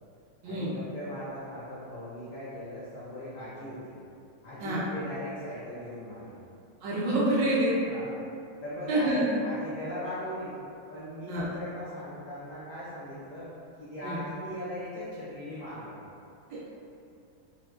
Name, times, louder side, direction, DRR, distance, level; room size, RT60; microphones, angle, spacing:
voice 1, 0.4-4.0 4.4-6.4 7.8-8.1 8.6-10.6 10.9-13.5 13.8-16.0, equal, 75° left, -11 dB, 0.7 m, -39 dB
voice 2, 6.8-7.7 8.9-9.2 11.3-11.5 14.0-14.2 16.5-16.8, right 1 dB, 70° right, -7 dB, 1.1 m, -27 dB
4.2 x 2.2 x 2.3 m, 2.6 s
omnidirectional pair, 2.3 m